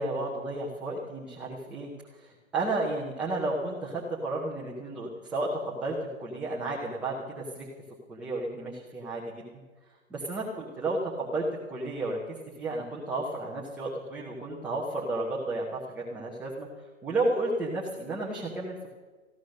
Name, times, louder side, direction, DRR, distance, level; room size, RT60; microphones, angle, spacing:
voice 1, 0.0-7.7 8.1-9.5 10.1-12.2 12.6-16.7 17.0-18.9, right 2 dB, 5° right, -5 dB, 0.5 m, -32 dB
14.5 x 11.5 x 6.3 m, 1.3 s
hypercardioid pair, 145°, 42 cm